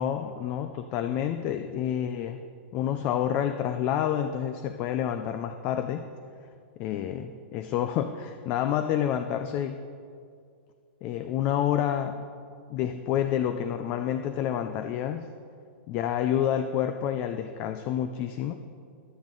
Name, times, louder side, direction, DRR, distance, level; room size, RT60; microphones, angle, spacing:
voice 1, 0.0-2.4 2.7-6.1 6.8-9.8 11.0-12.2 12.7-15.3 15.9-18.6, left 10 dB, 25° left, 8 dB, 0.4 m, -28 dB
21.5 x 7.3 x 3.8 m, 2.3 s
supercardioid pair, 175°, 6 cm